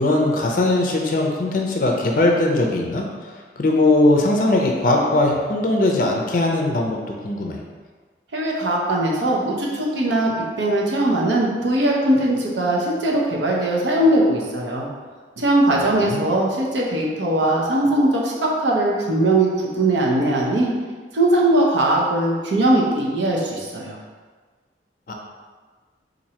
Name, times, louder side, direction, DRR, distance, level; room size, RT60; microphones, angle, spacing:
voice 1, 0.0-3.0 3.6-7.6 15.7-16.2 25.1-25.2, left 2 dB, 50° left, 1 dB, 0.4 m, -20 dB
voice 2, 8.3-14.9 15.4-20.7 21.1-24.0, right 1 dB, 85° right, -3 dB, 0.7 m, -20 dB
4.2 x 2.6 x 2.8 m, 1.4 s
head